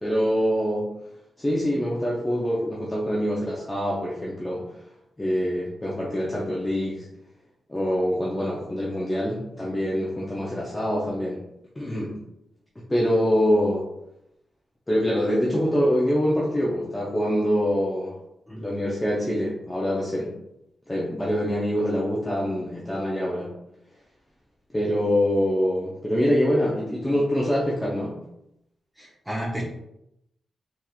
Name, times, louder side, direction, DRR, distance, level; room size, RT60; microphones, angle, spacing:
voice 1, 0.0-0.9 1.4-4.7 5.2-7.1 7.7-11.4 11.8-12.2 12.8-13.9 14.9-18.2 18.6-20.3 20.9-23.5 24.7-28.2, equal, 15° left, -5 dB, 0.5 m, -25 dB
voice 2, 29.0-29.6, equal, 5° right, -5 dB, 1.0 m, -32 dB
3.5 x 2.9 x 2.3 m, 0.82 s
wide cardioid pair, 135°, 0 cm